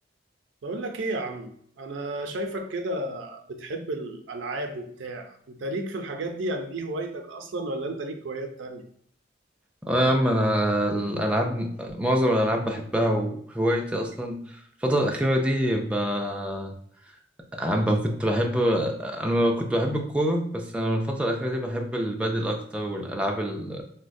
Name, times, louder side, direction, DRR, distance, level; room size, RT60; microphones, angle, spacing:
voice 1, 0.6-8.8, right 1 dB, 85° right, 5 dB, 0.5 m, -33 dB
voice 2, 9.8-16.7 17.5-23.8, equal, 5° right, 1 dB, 0.3 m, -25 dB
3.9 x 2.1 x 2.5 m, 0.63 s
head